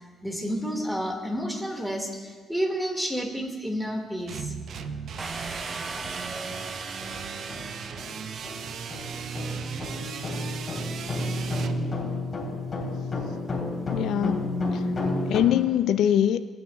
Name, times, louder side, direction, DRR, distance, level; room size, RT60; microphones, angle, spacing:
voice 1, 0.2-4.5, equal, ahead, 2 dB, 1.8 m, -30 dB
sound 1, 4.3-11.7, right 7 dB, 65° right, 0.6 m, -37 dB
sound 2, 4.7-4.9 5.4-5.5 6.0-15.4, left 2 dB, 35° left, 3.1 m, -32 dB
sound 3, 5.2-8.9, right 2 dB, 20° right, 0.7 m, -39 dB
voice 2, 13.9-16.4, left 10 dB, 75° left, 12 dB, 0.3 m, -24 dB
20.5 x 9.4 x 2.2 m, 1.5 s
cardioid pair, 90°, 0 cm